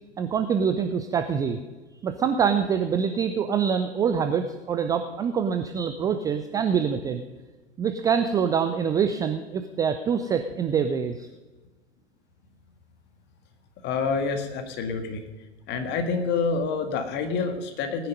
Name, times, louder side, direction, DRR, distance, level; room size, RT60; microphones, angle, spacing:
voice 1, 0.2-1.6 2.0-7.2 7.8-11.3, right 7 dB, 10° right, 8 dB, 0.4 m, -25 dB
voice 2, 13.8-15.2 15.7-18.1, left 5 dB, 30° left, 6 dB, 1.9 m, -27 dB
18.5 x 9.9 x 5.4 m, 1.2 s
figure-of-eight pair, 105°, 34 cm